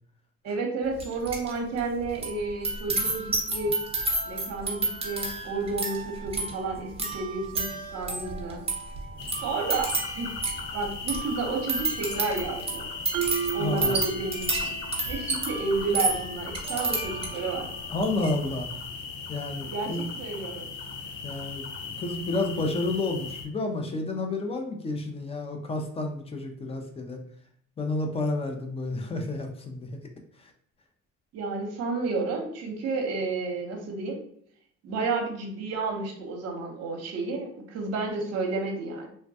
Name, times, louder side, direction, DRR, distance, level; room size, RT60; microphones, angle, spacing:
voice 1, 0.4-3.8 4.2-8.6 9.4-10.3 10.7-12.9 13.5-14.7 15.1-17.7 19.7-20.7 31.3-34.2 34.8-39.1, right 3 dB, 55° right, 2 dB, 0.8 m, -31 dB
sound 1, 1.0-1.5 1.8-17.5 18.0-18.3, right 2 dB, 20° right, 0.8 m, -31 dB
sound 2, 9.2-23.4, left 5 dB, 75° left, 0.6 m, -38 dB
Marimba xylophone, 13.1-14.9, right 9 dB, 80° right, 0.5 m, -32 dB
voice 2, 13.6-14.0 17.9-18.7 19.3-20.1 21.2-27.2 27.8-29.9 30.4-30.5, left 2 dB, 20° left, 3 dB, 0.4 m, -30 dB
3.2 x 2.2 x 2.6 m, 0.63 s
cardioid pair, 120°, 31 cm